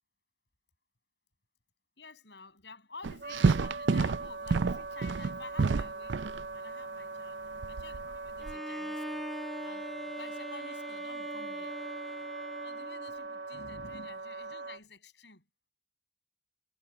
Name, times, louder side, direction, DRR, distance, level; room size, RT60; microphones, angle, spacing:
voice 1, 2.0-9.2 9.6-11.8 12.6-15.5, left 3 dB, 75° left, 7.0 m, -50 dB
sound 1, 3.0-6.4 7.6-8.5, right 4 dB, 90° right, 0.5 m, -28 dB
Wind instrument woodwind instrument, 3.2-14.8, right 3 dB, 65° right, 1.3 m, -41 dB
Bowed string instrument, 8.4-13.4, equal, ahead, 0.5 m, -42 dB
head